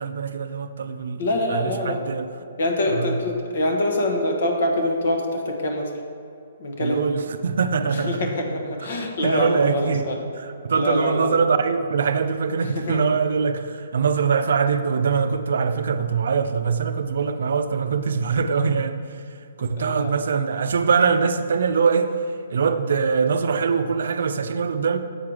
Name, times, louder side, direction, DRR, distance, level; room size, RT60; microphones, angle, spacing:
voice 1, 0.0-2.3 2.9-3.2 6.8-8.3 9.2-10.1 10.4-19.2 19.6-22.1 22.5-25.0, right 5 dB, 70° right, 9 dB, 0.4 m, -23 dB
voice 2, 1.2-2.0 2.6-5.9 6.6-7.0 7.9-10.2 10.7-11.3 12.8-13.2 19.8-20.1, left 1 dB, 65° left, 3 dB, 1.2 m, -25 dB
7.8 x 4.8 x 4.7 m, 2.5 s
hypercardioid pair, 135°, 0 cm